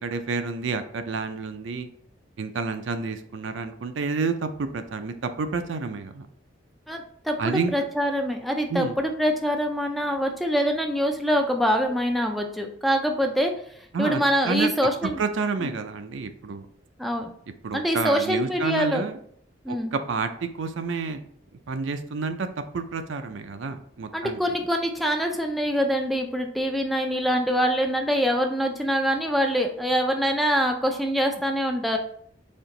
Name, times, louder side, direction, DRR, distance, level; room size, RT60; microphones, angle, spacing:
voice 1, 0.0-1.9 2.4-6.3 7.4-7.7 8.7-9.0 13.9-14.7 15.0-16.7 17.6-19.2 19.7-21.2 21.7-22.5 22.7-24.4, right 4 dB, 75° right, 8 dB, 0.5 m, -29 dB
voice 2, 6.9-13.5 14.0-15.2 15.6-15.7 17.0-17.3 17.7-19.0 19.6-19.9 24.1-32.0, equal, ahead, 3 dB, 0.3 m, -24 dB
4.3 x 2.9 x 3.8 m, 0.64 s
head